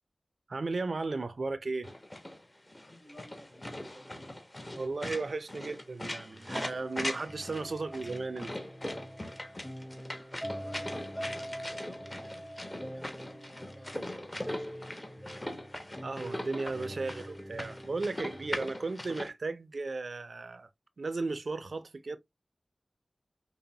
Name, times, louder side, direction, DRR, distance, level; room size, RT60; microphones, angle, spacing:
voice 1, 0.5-1.9 4.8-8.5 16.0-20.7 21.0-22.2, right 3 dB, 70° right, 0.5 m, -35 dB
sound 1, 1.8-19.3, left 1 dB, 25° left, 1.1 m, -41 dB
voice 2, 2.8-4.4 10.5-15.3, left 1 dB, 55° left, 3.0 m, -55 dB
sound 2, 6.3-18.6, equal, 5° left, 0.6 m, -44 dB
5.3 x 2.1 x 2.7 m
cardioid pair, 45°, 0 cm